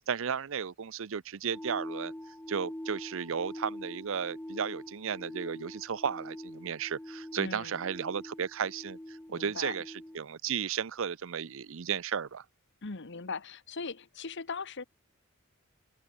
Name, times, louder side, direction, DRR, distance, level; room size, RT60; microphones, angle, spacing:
voice 1, 0.1-2.1 2.5-12.4, right 7 dB, 65° right, 0.6 m, -34 dB
sound 1, 1.5-10.2, left 1 dB, 10° left, 0.8 m, -44 dB
voice 2, 7.4-7.8 9.3-9.8 12.8-14.8, left 4 dB, 55° left, 1.2 m, -39 dB
open air
head